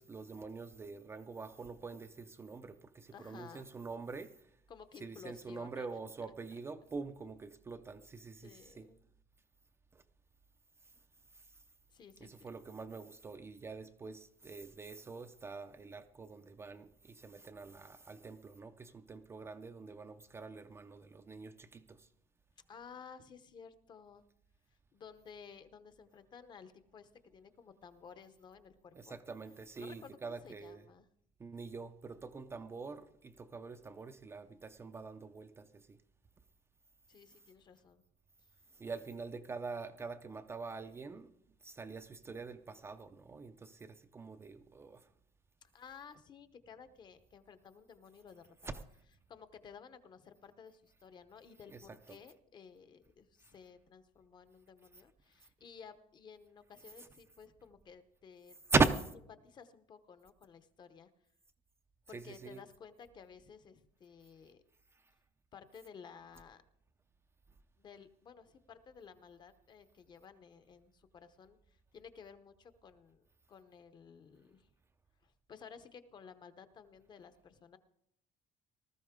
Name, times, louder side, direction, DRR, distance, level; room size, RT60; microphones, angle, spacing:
voice 1, 0.0-4.3 5.0-8.9 9.9-10.0 12.2-22.1 28.9-30.8 31.4-36.0 38.8-41.3 41.6-45.1 48.7-48.8 51.7-51.9 53.4-53.5 58.7-59.1 62.1-62.6, right 4 dB, 15° right, 0.5 m, -41 dB
voice 2, 3.1-3.7 4.7-5.9 6.2-6.3 8.4-9.0 11.9-12.5 22.7-24.2 24.9-29.1 29.8-31.1 37.1-38.0 45.6-48.8 49.3-58.6 59.3-61.1 62.1-64.6 65.5-66.6 67.8-74.7 75.2-77.8, left 6 dB, 30° left, 0.9 m, -55 dB
19.0 x 14.0 x 3.7 m
cardioid pair, 180°, 15 cm